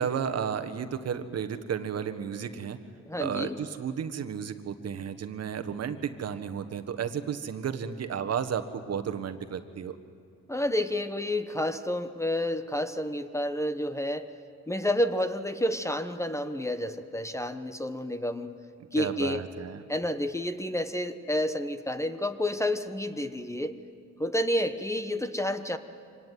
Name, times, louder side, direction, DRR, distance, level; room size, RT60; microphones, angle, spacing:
voice 1, 0.0-2.8 3.2-9.9 18.9-19.8, right 7 dB, 55° right, 8 dB, 1.4 m, -33 dB
voice 2, 3.1-3.6 10.5-14.3 14.7-18.5 18.9-19.5 19.9-23.8 24.2-25.8, left 1 dB, 10° left, 10 dB, 1.0 m, -30 dB
25.0 x 18.5 x 9.4 m, 2.3 s
cardioid pair, 90°, 30 cm